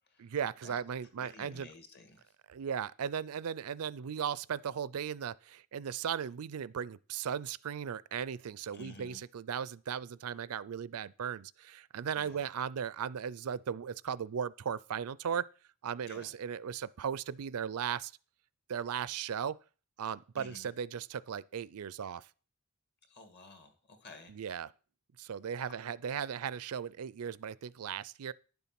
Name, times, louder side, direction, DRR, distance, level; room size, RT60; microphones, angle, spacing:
voice 1, 0.2-1.7 2.5-15.5 15.8-18.1 18.7-19.6 20.0-22.2 24.3-24.7 25.2-28.3, right 8 dB, 80° right, 0.4 m, -37 dB
voice 2, 1.2-2.3 8.7-9.2 12.1-12.5 16.1-16.3 20.4-20.7 23.1-24.3, left 3 dB, 50° left, 2.1 m, -52 dB
10.5 x 7.1 x 5.9 m
head